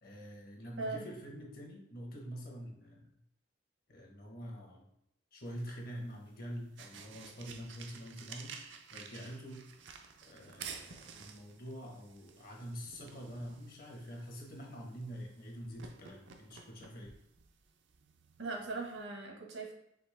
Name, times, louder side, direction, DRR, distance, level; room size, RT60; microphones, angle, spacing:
voice 1, 0.0-3.1 3.9-4.9 5.3-8.5 8.9-9.7 10.3-17.1, equal, 55° left, 0 dB, 1.1 m, -46 dB
sound 1, 5.4-19.0, right 6 dB, 65° right, 0.4 m, -53 dB
voice 2, 18.4-19.7, right 3 dB, 85° right, 0 dB, 1.2 m, -39 dB
5.2 x 2.8 x 3.4 m, 0.78 s
head